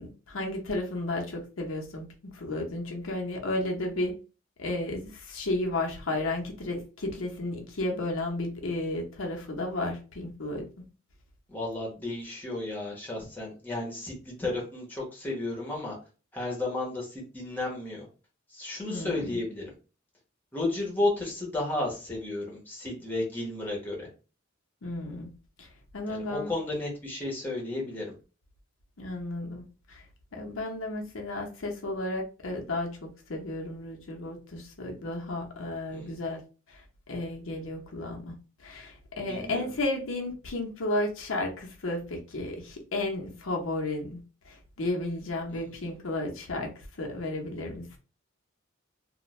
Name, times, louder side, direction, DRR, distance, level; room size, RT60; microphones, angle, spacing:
voice 1, 0.0-2.1 2.3-4.1 4.6-10.8 18.9-19.4 24.8-25.3 25.6-25.7 25.9-26.5 29.0-29.6 29.9-30.0 30.3-36.4 36.7-36.8 37.1-38.3 38.6-48.0, left 2 dB, 90° left, 1 dB, 0.7 m, -33 dB
voice 2, 11.5-15.9 16.3-18.1 18.5-19.7 20.5-24.1 26.1-28.1 35.9-36.1 39.2-39.7, left 2 dB, 10° left, -3 dB, 0.9 m, -33 dB
2.4 x 2.2 x 3.1 m, 0.34 s
head